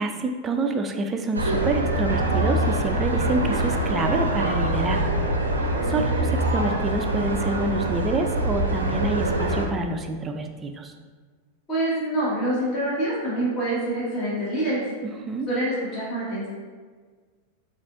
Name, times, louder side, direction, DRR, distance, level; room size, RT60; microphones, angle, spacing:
voice 1, 0.0-5.0 5.9-10.9 15.0-15.5, right 2 dB, 20° right, 5 dB, 0.4 m, -27 dB
sound 1, 1.3-9.7, right 1 dB, 75° right, 0.5 m, -24 dB
voice 2, 11.7-14.8 15.5-16.5, right 1 dB, 30° left, -7 dB, 1.4 m, -26 dB
6.5 x 2.5 x 2.5 m, 1.5 s
figure-of-eight pair, 90°, 0 cm